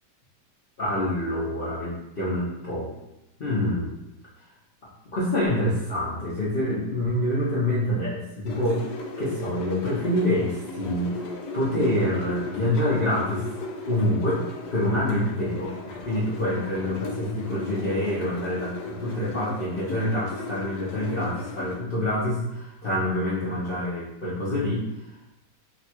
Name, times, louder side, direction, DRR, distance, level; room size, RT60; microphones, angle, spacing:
voice 1, 0.8-2.9 3.4-3.9 5.0-8.8 9.2-11.2 11.5-13.4 13.9-14.4 14.7-25.1, left 1 dB, 85° left, -8 dB, 0.4 m, -26 dB
sound 1, 8.5-21.8, left 3 dB, 70° left, 1.0 m, -36 dB
3.9 x 2.3 x 4.3 m, 0.90 s
omnidirectional pair, 2.2 m